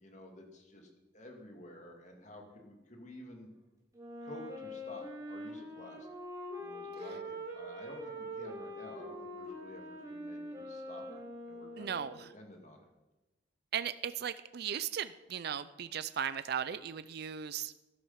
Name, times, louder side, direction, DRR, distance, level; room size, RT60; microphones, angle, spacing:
voice 1, 0.0-3.5 4.2-6.1 6.6-9.8 10.1-11.2 11.5-12.0 12.3-12.8, left 1 dB, 40° left, 3 dB, 2.3 m, -51 dB
Wind instrument woodwind instrument, 3.9-12.3, equal, 20° right, 4.2 m, -44 dB
voice 2, 11.8-12.3 13.7-17.7, right 8 dB, 55° right, 14 dB, 0.4 m, -37 dB
13.5 x 11.5 x 5.7 m, 1.0 s
head